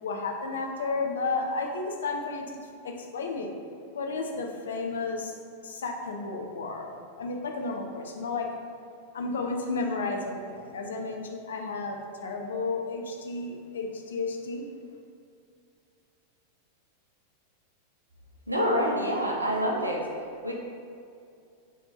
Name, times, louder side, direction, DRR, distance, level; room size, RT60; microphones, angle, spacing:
voice 1, 0.0-2.6 2.8-3.5 3.9-5.4 5.6-8.5 9.1-14.6, left 3 dB, 65° left, 2 dB, 0.7 m, -32 dB
voice 2, 18.5-20.1 20.4-20.5, equal, 85° right, -1 dB, 0.8 m, -26 dB
5.4 x 3.6 x 5.0 m, 2.5 s
figure-of-eight pair, 90°, 0 cm